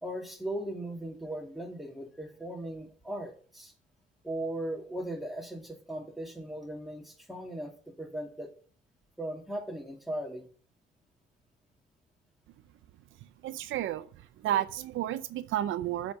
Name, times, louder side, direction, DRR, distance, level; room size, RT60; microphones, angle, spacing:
voice 1, 0.0-3.7 4.2-8.5 9.2-10.5, right 1 dB, ahead, 1 dB, 2.3 m, -38 dB
voice 2, 13.4-14.1 14.4-16.1, right 12 dB, 80° right, 13 dB, 0.6 m, -31 dB
7.9 x 5.2 x 5.9 m, 0.43 s
cardioid pair, 90°, 20 cm